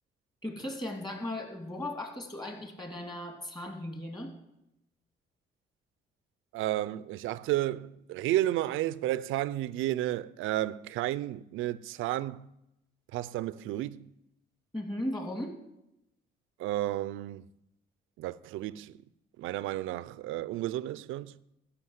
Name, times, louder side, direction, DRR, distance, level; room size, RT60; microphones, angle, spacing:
voice 1, 0.4-4.3 14.7-15.5, left 1 dB, 20° left, 2.5 m, -37 dB
voice 2, 6.5-12.5 13.1-14.1 16.6-17.5 18.2-19.0 19.4-21.4, right 14 dB, 85° right, 0.4 m, -32 dB
13.0 x 5.7 x 7.9 m
cardioid pair, 90°, 20 cm